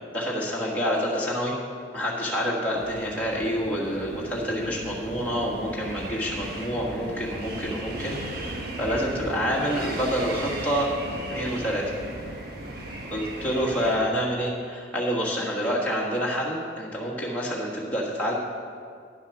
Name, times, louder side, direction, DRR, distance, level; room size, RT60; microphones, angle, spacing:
voice 1, 0.1-1.5 1.9-10.9 11.3-11.9 13.1-18.3, equal, 10° left, -6 dB, 1.5 m, -27 dB
sound 1, 2.7-14.0, right 1 dB, 50° right, 1.2 m, -36 dB
10.0 x 7.1 x 6.0 m, 2.1 s
head